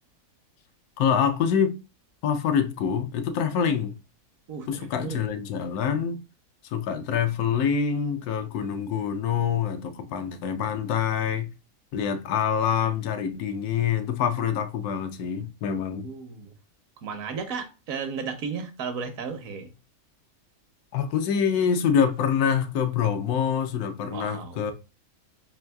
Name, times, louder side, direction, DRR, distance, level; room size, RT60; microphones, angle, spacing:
voice 1, 1.0-1.8 2.2-4.0 4.7-6.2 6.7-11.5 11.9-16.1 20.9-24.7, left 7 dB, 85° left, 1.1 m, -25 dB
voice 2, 4.5-5.5 16.0-16.5 17.0-19.7 24.0-24.6, right 5 dB, 70° right, 1.1 m, -34 dB
4.6 x 3.5 x 2.2 m
omnidirectional pair, 1.5 m